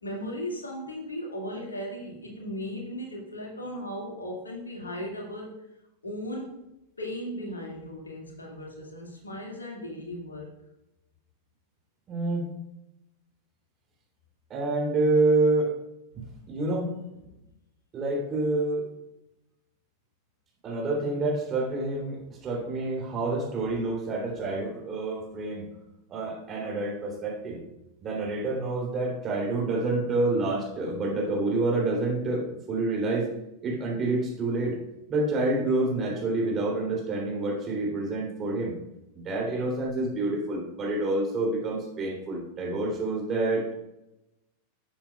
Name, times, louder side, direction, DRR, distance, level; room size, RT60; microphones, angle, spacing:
voice 1, 0.0-5.5 6.0-6.5 7.0-10.5, equal, 75° left, -1 dB, 2.1 m, -36 dB
voice 2, 12.1-12.5 14.5-15.7 16.5-16.9 17.9-18.9 20.6-25.7 26.1-27.6 28.0-33.3 33.6-34.8 35.1-38.8 39.1-43.7, right 2 dB, 25° right, -2 dB, 3.1 m, -28 dB
13.0 x 7.2 x 2.3 m, 0.92 s
figure-of-eight pair, 90°, 0 cm